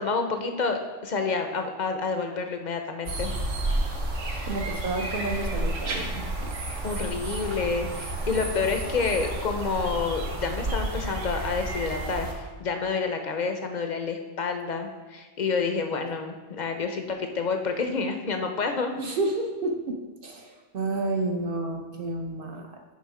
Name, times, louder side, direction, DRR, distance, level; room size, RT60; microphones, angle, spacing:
voice 1, 0.0-3.3 6.8-19.2, left 4 dB, 45° left, 5 dB, 0.6 m, -29 dB
sound 1, 3.1-12.3, right 1 dB, 70° right, 1.3 m, -31 dB
voice 2, 4.5-6.5 19.0-22.7, right 2 dB, 55° right, 3 dB, 0.7 m, -30 dB
9.7 x 3.5 x 4.8 m, 1.3 s
omnidirectional pair, 1.4 m